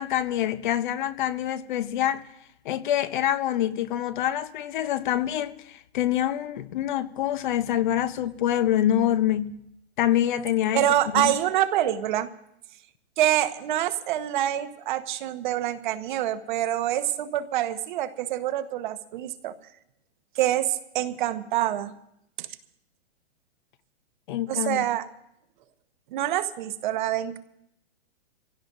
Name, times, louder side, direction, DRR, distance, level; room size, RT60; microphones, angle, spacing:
voice 1, 0.0-2.2 2.6-9.6 10.0-10.9 11.1-11.3 24.3-24.8, left 11 dB, 45° left, 0.7 m, -26 dB
voice 2, 10.7-12.3 13.2-19.5 20.4-21.9 22.4-22.5 24.5-25.0 26.1-27.4, right 12 dB, 45° right, 1.0 m, -26 dB
25.0 x 16.5 x 2.6 m
hypercardioid pair, 150°, 33 cm